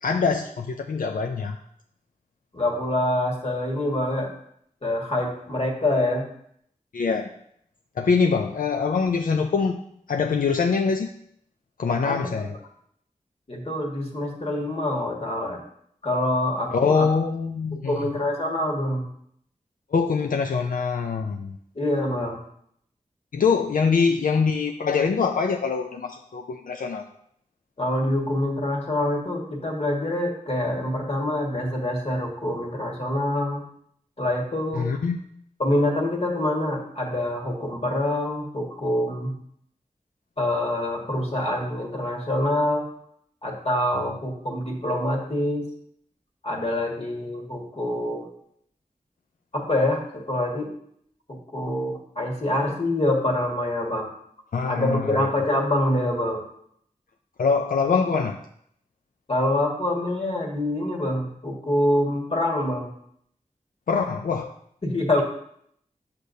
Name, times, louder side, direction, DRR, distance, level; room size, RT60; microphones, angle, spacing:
voice 1, 0.0-1.6 6.9-7.3 8.0-9.8 10.1-11.1 11.8-12.5 16.7-17.9 19.9-21.6 23.3-27.0 34.7-35.2 43.9-44.2 54.5-55.3 57.4-58.4 63.9-64.5, left 5 dB, 80° left, 3 dB, 0.4 m, -24 dB
voice 2, 2.5-4.3 4.8-6.2 12.0-12.5 13.5-15.6 16.0-17.0 17.8-19.0 21.7-22.4 27.8-33.6 34.2-34.9 35.6-39.3 40.4-42.9 43.4-45.7 46.4-48.2 49.5-50.7 51.3-54.1 54.7-56.4 59.3-62.9 64.8-65.2, left 1 dB, 45° left, 0 dB, 1.6 m, -25 dB
8.3 x 6.5 x 2.7 m, 0.69 s
wide cardioid pair, 75°, 14 cm